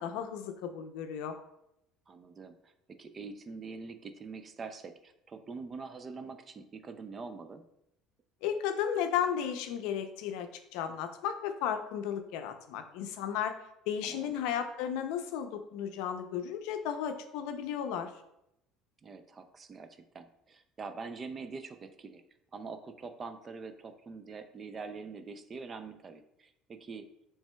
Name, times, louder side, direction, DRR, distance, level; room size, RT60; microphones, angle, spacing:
voice 1, 0.0-1.4 8.4-13.6 13.9-18.1, left 8 dB, 80° left, 7 dB, 0.5 m, -34 dB
voice 2, 2.1-7.6 14.0-14.3 19.0-22.2 22.5-27.1, right 4 dB, 25° right, 8 dB, 0.4 m, -44 dB
7.2 x 3.3 x 2.2 m, 0.81 s
cardioid pair, 145°, 0 cm